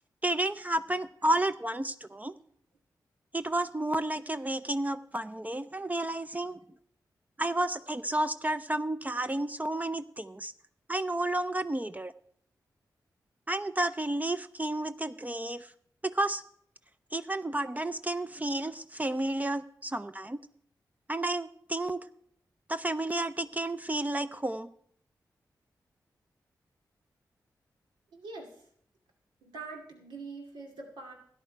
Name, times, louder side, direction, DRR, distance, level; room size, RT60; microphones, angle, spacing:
voice 1, 0.2-2.3 3.3-6.6 7.4-10.5 10.9-12.1 13.5-15.7 16.0-16.4 17.1-20.4 21.1-22.0 22.7-24.7, right 1 dB, 20° right, 12 dB, 0.5 m, -31 dB
voice 2, 28.1-28.5 29.4-31.1, right 3 dB, 90° right, 1 dB, 2.5 m, -43 dB
13.0 x 10.0 x 4.6 m, 0.66 s
supercardioid pair, 45°, 8 cm